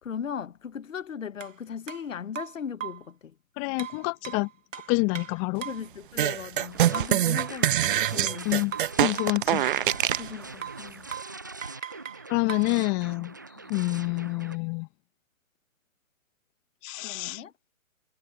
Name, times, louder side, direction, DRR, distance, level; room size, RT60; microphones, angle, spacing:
voice 1, 0.0-3.3 5.6-8.5 10.2-11.1 17.0-17.5, left 7 dB, 65° left, 1.1 m, -38 dB
sound 1, 1.4-1.5 1.9-2.0 2.4-3.1 3.8-5.9 6.9-8.5 8.7-10.3 10.6-10.9 11.1-11.4 11.6-12.7, right 9 dB, 65° right, 1.4 m, -38 dB
voice 2, 3.6-4.5 4.9-5.7 8.4-9.6 12.3-13.3 13.7-14.9 16.8-17.4, left 31 dB, 15° left, 0.7 m, -27 dB
sound 2, 6.2-10.3, right 12 dB, 40° right, 1.0 m, -24 dB
sound 3, 6.5-14.6, right 3 dB, 15° right, 0.4 m, -43 dB
figure-of-eight pair, 130°, 42 cm